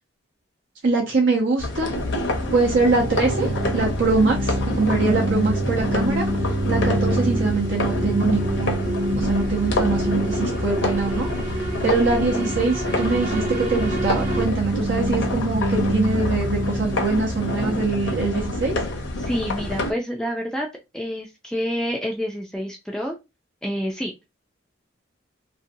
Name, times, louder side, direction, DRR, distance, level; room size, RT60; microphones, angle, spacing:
voice 1, 0.8-1.9 2.5-6.3 6.7-11.3 11.8-18.7, right 3 dB, 75° right, -2 dB, 0.7 m, -23 dB
sound 1, 1.6-19.9, left 2 dB, 70° left, 0.7 m, -28 dB
sound 2, 2.0-19.6, right 1 dB, 20° right, 0.7 m, -27 dB
sound 3, 5.6-14.4, right 1 dB, 45° right, 1.1 m, -32 dB
voice 2, 19.2-20.7 20.9-23.2 23.6-24.3, equal, 5° left, 0 dB, 0.3 m, -28 dB
2.6 x 2.1 x 2.6 m, 0.24 s
head